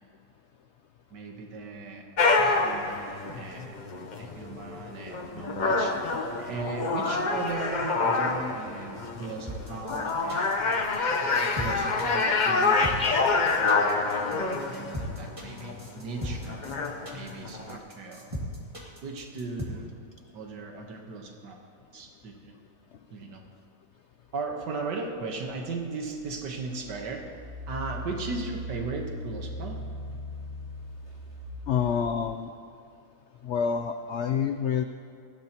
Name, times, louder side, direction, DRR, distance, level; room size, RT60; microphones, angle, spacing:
voice 1, 1.1-2.1 2.4-3.8 4.2-5.9 6.4-10.5 11.6-12.9 13.6-13.9 14.3-16.7 17.1-18.3 19.0-19.9 20.3-21.6 21.9-22.6 23.1-23.4 24.3-27.3 27.7-29.8, right 3 dB, 90° right, 2 dB, 1.9 m, -37 dB
sound 1, 2.2-17.8, left 3 dB, 35° left, 0.7 m, -27 dB
sound 2, 9.5-19.7, equal, 20° right, 2.2 m, -37 dB
Engine, 26.4-32.3, equal, 40° right, 2.3 m, -39 dB
voice 2, 31.7-32.5 33.4-34.8, left 7 dB, 75° left, 7 dB, 0.6 m, -27 dB
19.0 x 15.5 x 3.0 m, 2.5 s
omnidirectional pair, 1.8 m